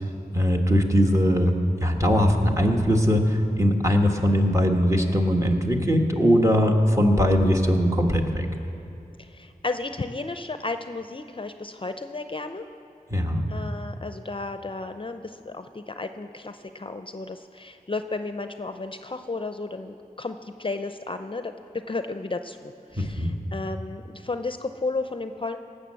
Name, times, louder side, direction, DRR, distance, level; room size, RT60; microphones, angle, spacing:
voice 1, 0.3-8.4 13.1-13.4 23.0-23.3, equal, 20° right, 2 dB, 1.5 m, -21 dB
voice 2, 9.2-12.7 13.5-25.6, left 3 dB, 35° left, 8 dB, 0.5 m, -33 dB
18.0 x 6.6 x 7.6 m, 2.8 s
wide cardioid pair, 55°, 15 cm